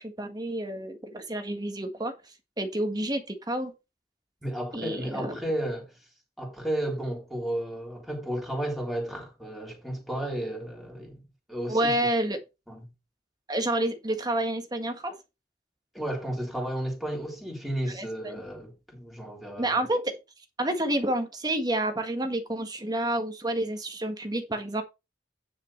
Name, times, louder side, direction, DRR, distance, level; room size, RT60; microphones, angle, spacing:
voice 1, 0.0-2.1 2.6-3.7 4.7-5.4 11.7-12.4 13.5-15.1 17.9-18.4 19.6-20.2 20.6-24.8, right 1 dB, 25° right, 1.6 m, -29 dB
voice 2, 4.4-5.9 6.4-11.2 11.5-11.9 12.7-12.8 15.9-19.8, right 1 dB, ahead, 3.6 m, -33 dB
9.7 x 6.4 x 4.3 m
head